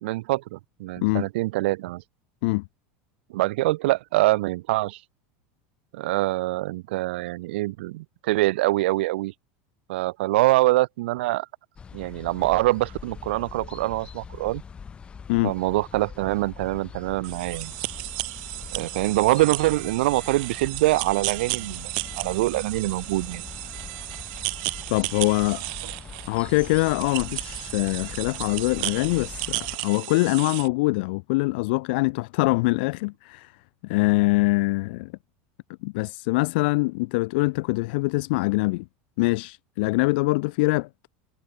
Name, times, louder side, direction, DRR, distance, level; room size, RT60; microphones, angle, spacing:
voice 1, 0.0-2.0 3.3-5.0 5.9-9.3 9.9-11.5 11.9-14.6 15.4-17.7 18.7-21.9 22.2-23.4 25.8-25.9, right 19 dB, 80° right, 0.9 m, -24 dB
sound 1, 11.8-29.8, left 6 dB, 15° left, 6.8 m, -42 dB
sound 2, 17.2-30.7, right 31 dB, 60° right, 2.9 m, -34 dB
voice 2, 24.9-25.6 26.3-33.5 33.8-35.1 35.8-38.8 39.2-40.9, left 25 dB, 65° left, 0.5 m, -24 dB
supercardioid pair, 155°, 6 cm